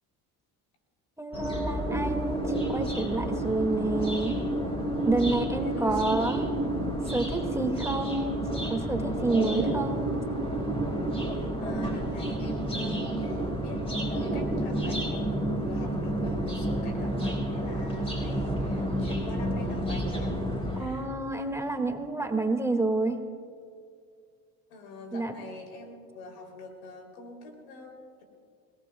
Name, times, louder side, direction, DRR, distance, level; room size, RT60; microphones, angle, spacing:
voice 1, 1.2-4.4 5.0-6.4 7.1-8.4 8.7-10.1 20.8-23.2 25.1-25.3, right 2 dB, 5° right, 3 dB, 2.0 m, -29 dB
sound 1, 1.3-20.8, right 1 dB, 10° left, 4.9 m, -30 dB
voice 2, 5.6-6.3 9.6-9.7 11.3-20.3 20.7-21.1 24.7-28.2, left 2 dB, 85° left, 2 dB, 3.2 m, -44 dB
28.0 x 17.5 x 2.3 m, 2.2 s
supercardioid pair, 75°, 45 cm